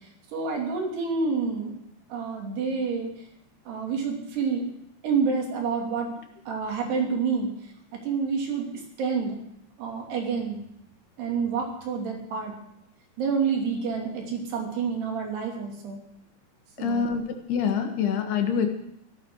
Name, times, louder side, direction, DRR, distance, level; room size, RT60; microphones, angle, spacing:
voice 1, 0.3-1.8 2.1-3.1 3.7-4.7 5.0-6.1 6.5-7.5 7.9-9.4 9.8-10.6 11.2-12.5 13.2-16.0 16.8-17.2, right 5 dB, 75° right, 0 dB, 4.9 m, -28 dB
voice 2, 16.8-17.2 17.5-18.7, left 7 dB, 75° left, 5 dB, 3.5 m, -25 dB
14.5 x 12.5 x 6.3 m, 0.75 s
omnidirectional pair, 4.7 m